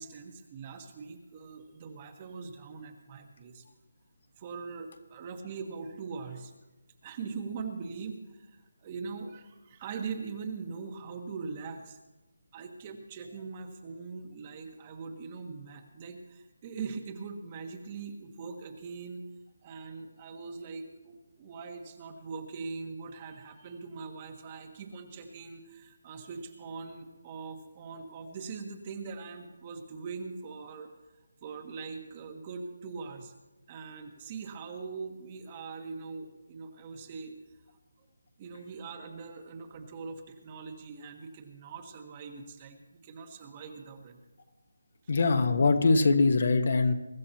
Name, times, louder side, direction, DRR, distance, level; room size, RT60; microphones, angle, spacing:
voice 1, 0.0-3.6 4.4-6.5 7.0-12.0 12.5-19.2 19.6-30.9 31.4-33.3 33.7-37.3 38.0-38.1 38.4-44.2 45.0-45.1, right 5 dB, 25° right, 5 dB, 1.3 m, -42 dB
voice 2, 45.1-46.9, left 3 dB, 50° left, 7 dB, 1.2 m, -23 dB
23.0 x 12.5 x 3.0 m, 1.1 s
figure-of-eight pair, 165°, 0 cm